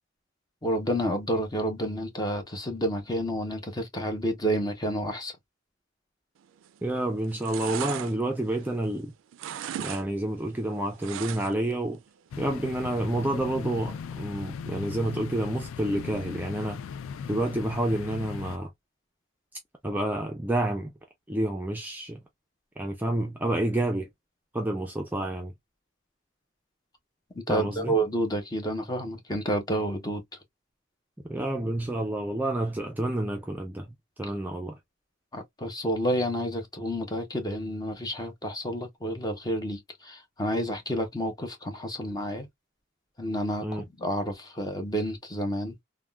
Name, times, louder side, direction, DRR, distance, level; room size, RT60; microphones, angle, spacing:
voice 1, 0.6-5.3 27.3-30.2 35.3-42.5 43.2-45.7, equal, 20° left, 0.7 m, -30 dB
sound 1, 6.6-6.9 7.2-9.0 9.3-10.0 10.3-11.7 12.1-12.2, right 10 dB, 75° right, 0.3 m, -37 dB
voice 2, 6.8-9.1 9.8-12.0 12.4-16.8 17.3-18.7 19.8-20.9 21.3-22.2 22.8-24.1 24.5-25.5 27.5-27.9 31.3-33.9 34.2-34.8 43.6-43.8, right 1 dB, 10° right, 0.4 m, -29 dB
sound 2, 12.3-18.6, left 6 dB, 85° left, 0.3 m, -38 dB
3.5 x 2.2 x 2.2 m
head